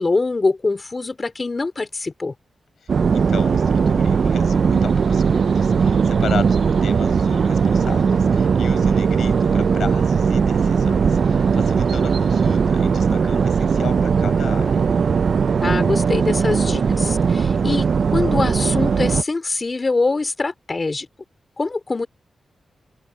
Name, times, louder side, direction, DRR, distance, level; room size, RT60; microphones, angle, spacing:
voice 1, 0.0-2.3 15.6-21.1 21.6-22.1, left 3 dB, 30° left, 4.2 m, -23 dB
voice 2, 2.8-14.8, left 7 dB, 80° left, 7.2 m, -35 dB
sound 1, 2.9-19.2, right 6 dB, 55° right, 0.3 m, -18 dB
sound 2, 4.3-19.0, right 7 dB, 75° right, 3.5 m, -34 dB
wide cardioid pair, 135°, 0 cm